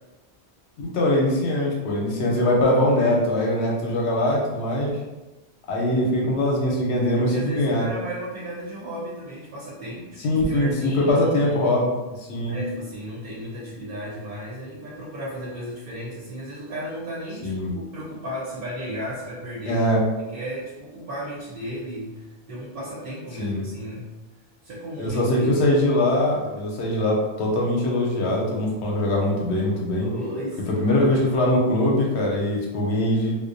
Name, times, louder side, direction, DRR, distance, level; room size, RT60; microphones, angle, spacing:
voice 1, 0.8-5.0 5.7-7.9 10.2-11.9 12.2-12.6 17.4-17.7 19.7-20.0 23.4-23.6 25.0-30.1 30.8-33.4, left 1 dB, 80° left, -2 dB, 0.9 m, -22 dB
voice 2, 7.1-11.8 12.4-19.9 20.2-24.1 24.6-25.8 26.4-26.6 30.0-31.1, equal, 60° right, -6 dB, 0.7 m, -34 dB
2.5 x 2.0 x 2.5 m, 1.1 s
omnidirectional pair, 1.1 m